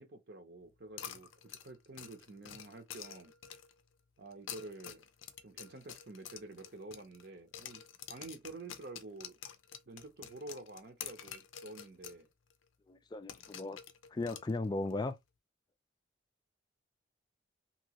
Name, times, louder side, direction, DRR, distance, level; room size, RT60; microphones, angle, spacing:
voice 1, 0.0-3.3 4.2-5.0 5.4-7.8 8.1-9.4 9.9-12.3, right 2 dB, 55° right, 0.7 m, -49 dB
sound 1, 1.0-3.8 4.3-7.3 7.5-12.2 12.5-12.6 13.3-14.9, left 9 dB, 85° left, 0.5 m, -48 dB
voice 2, 12.9-13.8 14.1-15.2, left 2 dB, 20° left, 0.3 m, -36 dB
3.0 x 2.8 x 2.9 m
head